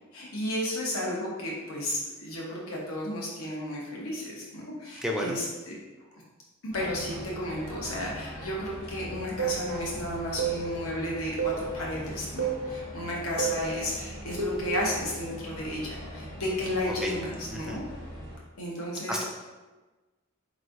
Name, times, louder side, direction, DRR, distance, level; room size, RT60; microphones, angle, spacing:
voice 1, 0.1-5.8 6.6-17.8 18.6-19.2, left 1 dB, 85° left, -3 dB, 1.0 m, -33 dB
voice 2, 5.0-5.4 17.0-17.1 17.5-17.8 19.1-19.2, equal, 5° right, -1 dB, 0.4 m, -31 dB
sound 1, 6.7-18.4, equal, 45° left, 1.0 m, -42 dB
sound 2, 9.4-9.6 10.4-10.6 11.4-11.6 12.4-12.6 13.4-13.6 14.4-14.7, right 7 dB, 80° right, 0.8 m, -29 dB
4.5 x 3.1 x 2.6 m, 1.2 s
head